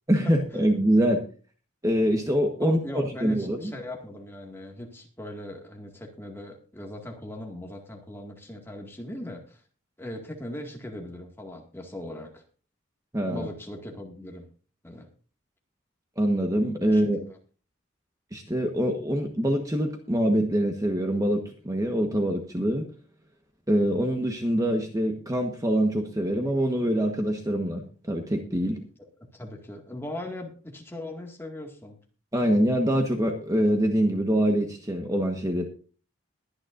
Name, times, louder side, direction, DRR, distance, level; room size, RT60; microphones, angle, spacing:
voice 1, 0.1-1.2 1.8-3.7 13.1-13.5 16.2-17.2 18.3-22.9 23.7-28.8 32.3-35.7, equal, 15° right, 3 dB, 1.3 m, -24 dB
voice 2, 2.6-9.6 10.0-12.4 13.3-14.5 14.8-15.1 16.9-17.4 29.3-32.0, left 1 dB, 10° left, 1 dB, 2.0 m, -39 dB
22.0 x 9.7 x 2.6 m, 0.37 s
head